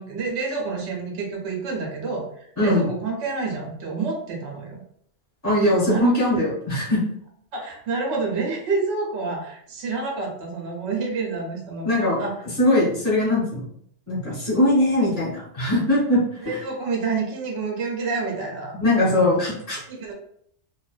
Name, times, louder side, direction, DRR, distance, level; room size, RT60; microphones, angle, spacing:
voice 1, 0.0-2.2 2.6-4.8 5.7-6.1 7.5-12.3 16.4-19.4 19.9-20.1, right 4 dB, 70° right, 0 dB, 0.8 m, -28 dB
voice 2, 5.4-7.0 11.8-12.2 12.6-13.7 14.1-16.6 18.7-19.8, left 1 dB, 15° left, -8 dB, 1.0 m, -21 dB
2.4 x 2.1 x 2.3 m, 0.67 s
omnidirectional pair, 1.2 m